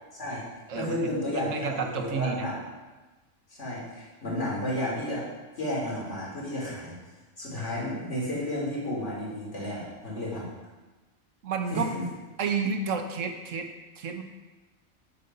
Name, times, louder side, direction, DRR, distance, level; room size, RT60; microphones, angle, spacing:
voice 1, 0.1-0.4 0.7-2.6 3.5-5.3 5.6-6.9 7.4-10.5 11.7-12.0, left 1 dB, 70° left, -4 dB, 3.4 m, -32 dB
voice 2, 0.7-2.5 11.4-11.9 12.4-13.7 14.0-14.2, right 5 dB, 90° right, 5 dB, 1.4 m, -31 dB
8.6 x 7.7 x 5.5 m, 1.2 s
omnidirectional pair, 1.3 m